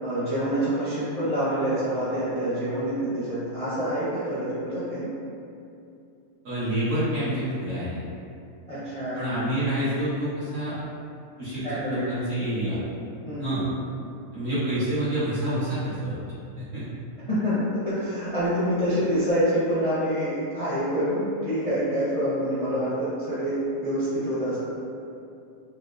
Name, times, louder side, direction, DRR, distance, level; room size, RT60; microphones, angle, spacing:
voice 1, 0.0-5.1 8.7-9.2 11.6-12.1 13.3-13.6 17.3-24.6, equal, 35° left, -13 dB, 0.6 m, -26 dB
voice 2, 6.4-8.0 9.1-10.7 11.4-12.8 13.4-13.6 14.3-16.1 16.7-16.8, right 1 dB, 60° right, -13 dB, 1.6 m, -27 dB
4.3 x 2.0 x 2.5 m, 2.6 s
omnidirectional pair, 1.5 m